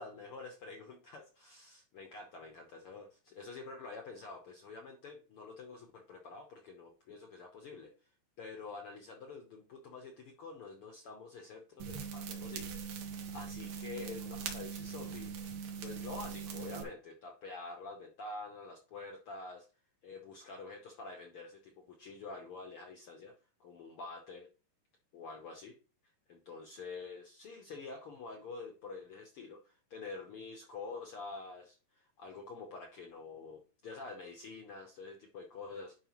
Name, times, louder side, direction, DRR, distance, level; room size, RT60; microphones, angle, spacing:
voice 1, 0.0-8.1 8.4-13.0 13.3-15.3 15.8-19.7 20.0-23.3 23.6-24.5 25.1-25.8 26.3-36.0, left 3 dB, 80° left, 2 dB, 1.2 m, -47 dB
sound 1, 11.8-16.8, right 6 dB, 80° right, 2.9 m, -41 dB
10.5 x 4.9 x 3.0 m, 0.35 s
omnidirectional pair, 3.9 m